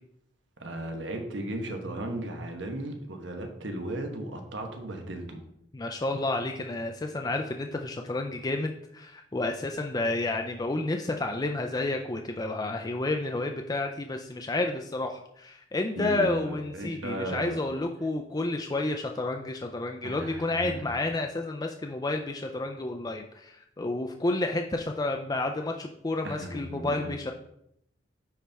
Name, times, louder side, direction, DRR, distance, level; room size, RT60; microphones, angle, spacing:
voice 1, 0.6-5.4 16.0-17.6 20.0-20.9 26.2-27.1, right 1 dB, 85° right, 4 dB, 1.2 m, -36 dB
voice 2, 5.7-27.3, left 2 dB, 20° left, 3 dB, 0.4 m, -30 dB
9.2 x 4.3 x 3.5 m, 0.76 s
head